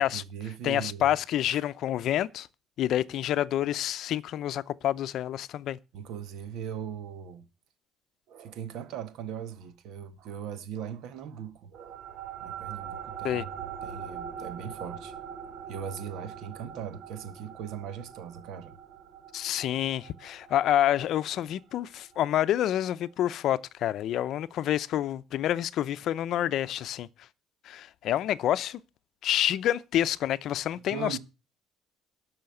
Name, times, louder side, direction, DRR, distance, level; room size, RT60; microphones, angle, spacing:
voice 1, 0.0-1.1 1.5-1.6 5.9-7.5 8.3-15.1 15.7-18.8 30.9-31.2, right 8 dB, 70° right, 1.7 m, -39 dB
voice 2, 0.6-2.5 2.8-5.8 13.2-13.4 19.3-27.1 27.6-28.8 29.2-31.2, left 12 dB, 55° left, 0.6 m, -28 dB
sound 1, 11.7-22.5, right 8 dB, 50° right, 1.4 m, -43 dB
13.0 x 5.7 x 7.8 m
cardioid pair, 155°, 0 cm